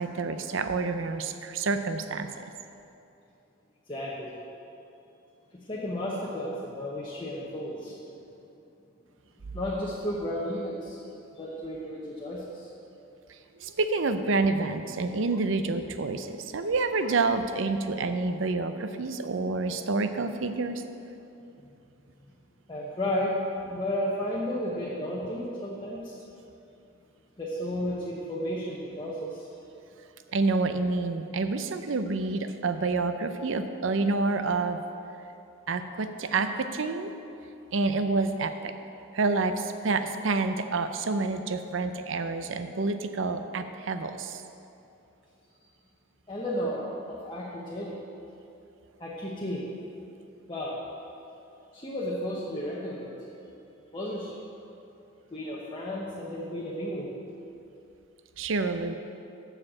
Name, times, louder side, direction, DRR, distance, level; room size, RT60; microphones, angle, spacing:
voice 1, 0.0-2.3 13.6-20.8 30.3-34.8 35.7-37.1 37.7-38.7 39.1-44.4 58.4-59.0, right 3 dB, 65° right, 9 dB, 0.6 m, -28 dB
voice 2, 3.9-4.3 5.7-8.2 9.5-11.0 11.3-12.7 22.7-26.1 27.4-29.5 46.3-48.0 49.0-49.7 50.5-50.8 51.7-53.1 53.9-54.4 55.3-57.1, equal, 25° left, -5 dB, 1.0 m, -33 dB
7.6 x 6.6 x 7.3 m, 2.7 s
head